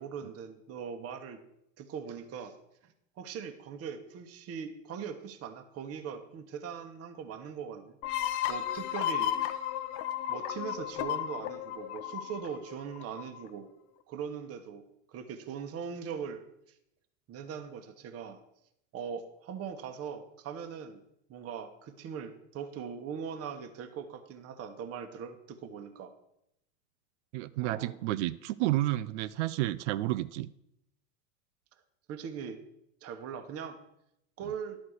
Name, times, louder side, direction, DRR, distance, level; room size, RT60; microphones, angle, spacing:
voice 1, 0.0-1.4 1.8-2.5 2.8-8.0 8.5-9.6 10.3-13.7 14.1-16.4 17.3-18.4 18.9-21.0 21.3-26.1 27.6-28.0 32.1-32.6 33.0-33.8 34.4-34.8, right 7 dB, 35° right, 7 dB, 1.1 m, -40 dB
sound 1, 8.0-13.5, left 11 dB, 50° left, 0.8 m, -34 dB
voice 2, 27.3-30.5, right 16 dB, 60° right, 16 dB, 0.5 m, -31 dB
11.0 x 4.2 x 6.4 m, 0.79 s
hypercardioid pair, 100°, 40 cm